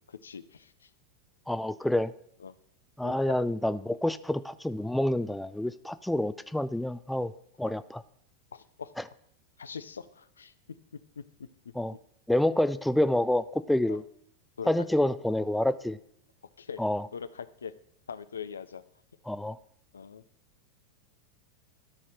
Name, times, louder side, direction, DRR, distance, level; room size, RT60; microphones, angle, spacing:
voice 1, 0.1-0.9 2.4-2.6 3.0-3.5 3.9-4.0 7.6-7.7 8.5-8.9 9.6-10.5 10.9-11.5 13.9-14.0 14.6-15.1 16.6-16.8 17.1-17.7 18.1-18.8 19.9-20.2, left 6 dB, 80° left, 14 dB, 0.4 m, -42 dB
voice 2, 1.5-2.1 3.0-7.3 7.6-8.0 11.8-11.9 12.3-14.0 14.7-16.0 16.8-17.0 19.3-19.6, left 1 dB, 5° left, 14 dB, 0.4 m, -28 dB
12.5 x 4.2 x 4.8 m, 0.69 s
figure-of-eight pair, 90°, 0 cm